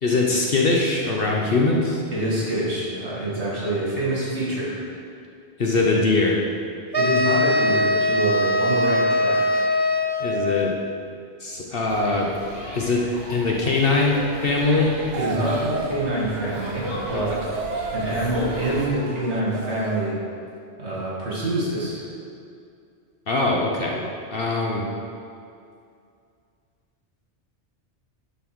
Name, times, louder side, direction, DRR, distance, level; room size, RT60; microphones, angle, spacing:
voice 1, 0.0-2.0 5.6-6.4 10.2-10.7 11.4-12.3 12.7-15.0 17.1-17.2 23.3-24.0 24.3-24.9, left 3 dB, 55° left, -1 dB, 1.0 m, -22 dB
voice 2, 2.1-4.8 6.9-9.7 15.1-17.5 17.9-20.2 20.8-22.0, right 1 dB, 70° right, -6 dB, 2.4 m, -26 dB
sound 1, 6.9-10.6, left 1 dB, 40° right, 0.4 m, -21 dB
sound 2, 11.9-18.9, equal, 20° left, 2.5 m, -36 dB
sound 3, 14.0-20.2, right 3 dB, 90° right, 1.0 m, -33 dB
11.0 x 4.3 x 6.1 m, 2.4 s
omnidirectional pair, 1.2 m